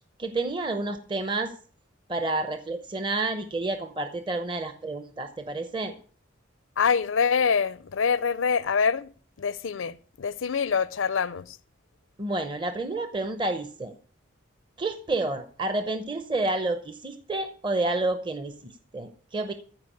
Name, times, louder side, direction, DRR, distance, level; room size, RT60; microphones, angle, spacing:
voice 1, 0.2-1.5 2.1-5.9 12.2-13.9 14.8-19.5, right 2 dB, 25° right, 0.8 m, -29 dB
voice 2, 6.8-9.1 9.4-11.6, left 6 dB, 80° left, 0.5 m, -25 dB
14.5 x 5.0 x 8.5 m
head